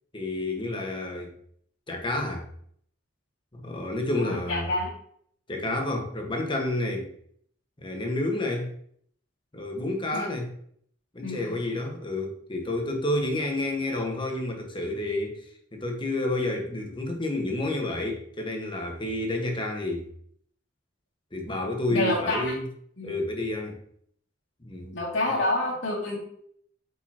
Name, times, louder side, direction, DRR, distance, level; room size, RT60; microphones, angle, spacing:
voice 1, 0.1-1.4 1.9-2.5 3.5-4.7 5.5-7.1 7.8-8.7 9.5-10.5 11.1-15.4 15.7-20.1 21.3-22.7 23.0-23.8 24.6-24.9, left 2 dB, 25° left, 1.5 m, -30 dB
voice 2, 4.2-4.9 10.1-10.3 11.2-11.6 21.9-22.5 23.0-23.1 24.9-26.2, left 2 dB, 80° left, 2.6 m, -28 dB
8.7 x 5.5 x 3.0 m
head